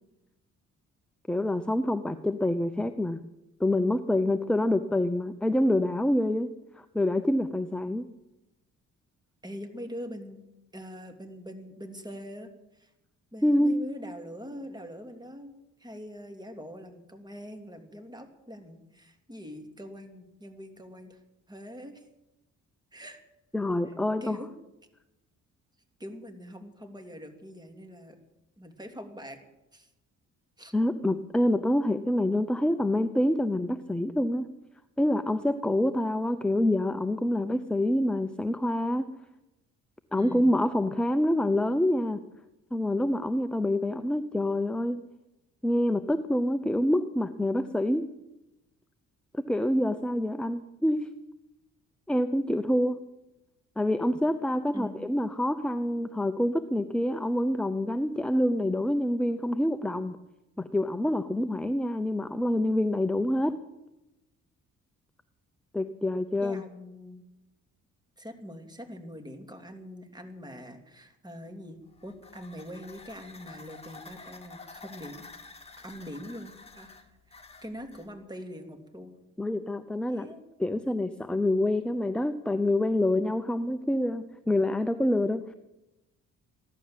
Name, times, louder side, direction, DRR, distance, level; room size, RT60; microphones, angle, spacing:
voice 1, 1.3-3.2 3.6-6.5 6.9-8.1 13.4-13.8 23.5-24.4 30.7-34.4 35.0-39.1 40.1-42.2 42.7-45.0 45.6-48.0 49.3-51.1 52.1-53.0 53.8-60.2 60.6-63.6 65.7-66.6 79.4-80.3 80.6-85.4, left 1 dB, 5° left, 10 dB, 0.7 m, -26 dB
voice 2, 9.4-10.4 10.7-12.9 13.3-15.5 15.8-21.2 21.5-22.0 22.9-23.2 23.8-23.9 24.2-24.5 26.0-28.2 28.6-29.4 29.7-29.9 30.6-30.7 40.1-40.5 54.7-55.0 66.4-67.2 68.2-79.1 80.1-80.4, equal, 15° right, 5 dB, 2.7 m, -43 dB
sound 1, 71.8-78.1, left 3 dB, 20° left, 2.1 m, -49 dB
15.5 x 11.5 x 7.5 m, 0.96 s
cardioid pair, 90°, 30 cm